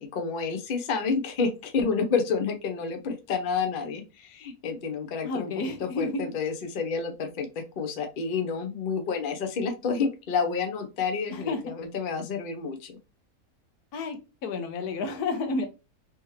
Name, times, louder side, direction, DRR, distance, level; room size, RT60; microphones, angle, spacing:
voice 1, 0.0-7.5 7.8-13.0, left 5 dB, 45° left, 5 dB, 0.7 m, -29 dB
voice 2, 5.2-6.2 11.3-11.6 13.9-15.7, left 3 dB, 85° left, 6 dB, 1.3 m, -31 dB
3.4 x 3.0 x 3.1 m, 0.29 s
omnidirectional pair, 1.6 m